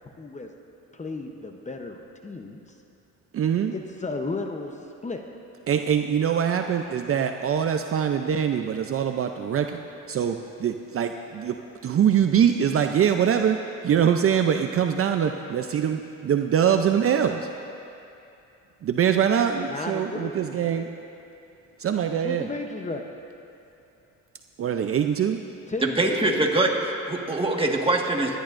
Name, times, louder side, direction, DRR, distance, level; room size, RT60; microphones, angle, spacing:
voice 1, 0.2-0.5 0.9-2.6 3.7-4.7 5.0-5.2 19.7-20.4 22.2-23.0 25.7-26.3, left 3 dB, 25° left, 3 dB, 0.9 m, -34 dB
voice 2, 3.3-3.7 5.7-9.8 10.1-11.5 11.8-13.6 13.8-17.5 18.8-20.9 21.8-22.5 24.6-25.4, right 8 dB, 50° right, 6 dB, 0.6 m, -23 dB
voice 3, 25.8-28.4, right 2 dB, 20° right, 0 dB, 1.7 m, -23 dB
25.5 x 11.0 x 2.6 m, 2.7 s
cardioid pair, 90°, 30 cm